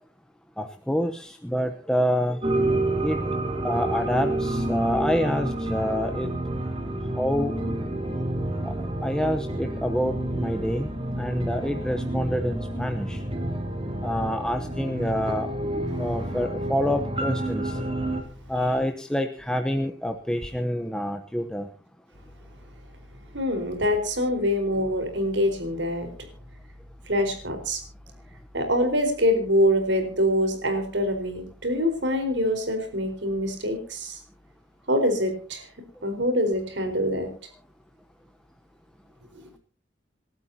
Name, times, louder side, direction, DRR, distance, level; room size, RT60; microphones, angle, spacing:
voice 1, 0.6-2.4 3.0-3.2 3.6-6.3 7.2-7.5 8.6-8.7 9.0-10.9 11.2-13.2 14.0-15.5 16.0-17.8 18.5-21.7, equal, 5° left, 5 dB, 0.9 m, -27 dB
sound 1, 2.4-18.2, right 1 dB, 30° right, 2.8 m, -29 dB
voice 2, 23.3-26.1 27.1-27.8 28.5-34.2 34.9-35.6 36.0-37.3, equal, 85° right, 6 dB, 4.5 m, -24 dB
28.0 x 12.5 x 2.8 m, 0.40 s
head